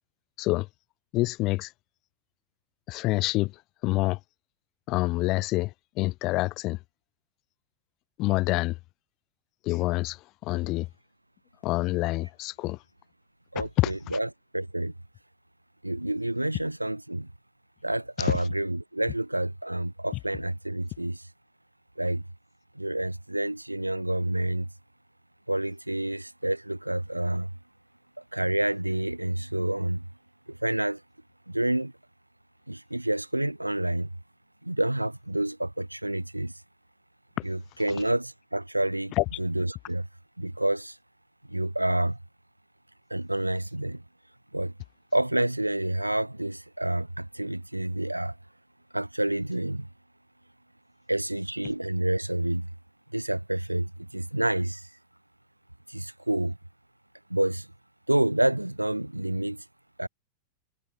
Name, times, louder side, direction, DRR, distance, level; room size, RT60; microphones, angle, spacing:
voice 1, 1.1-1.7 2.9-3.5 3.8-4.2 4.9-6.8 8.2-8.8 9.6-10.2 10.4-10.9 11.6-12.8 13.8-13.9 18.2-18.3 39.2-39.3, left 20 dB, 40° left, 4.0 m, -26 dB
voice 2, 13.5-14.9 15.8-17.3 17.8-21.2 22.0-22.2 22.7-24.7 25.5-27.5 28.3-30.1 30.5-31.0 31.5-31.9 32.7-34.1 34.6-36.5 37.4-40.1 40.4-41.0 41.5-42.2 43.1-44.0 44.5-44.7 45.1-48.3 48.9-49.9 51.1-52.7 53.1-54.9 55.9-56.6 57.3-57.7 58.1-59.6 60.0-60.1, right 1 dB, 85° right, 4.2 m, -28 dB
figure-of-eight pair, 90°, 0 cm